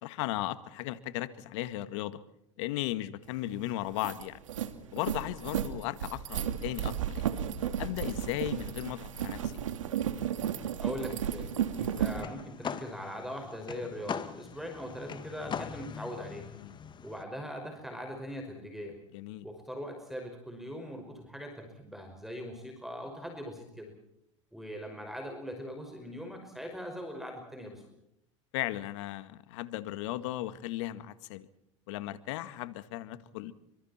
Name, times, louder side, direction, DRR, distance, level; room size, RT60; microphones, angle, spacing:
voice 1, 0.0-2.2 2.6-4.4 4.9-7.2 7.8-9.5 16.6-16.8 19.1-19.5 28.5-31.5 31.9-33.5, left 15 dB, 70° left, 13 dB, 1.9 m, -36 dB
sound 1, 3.4-3.5 3.8-12.2, right 9 dB, 90° right, 2.6 m, -33 dB
voice 2, 10.8-11.5 11.8-16.5 17.0-19.0 19.4-23.9 24.5-27.8, equal, ahead, 4 dB, 5.5 m, -41 dB
sound 2, 11.7-17.2, left 7 dB, 30° left, 2.1 m, -41 dB
29.0 x 25.5 x 4.4 m, 0.76 s
hypercardioid pair, 100°, 16 cm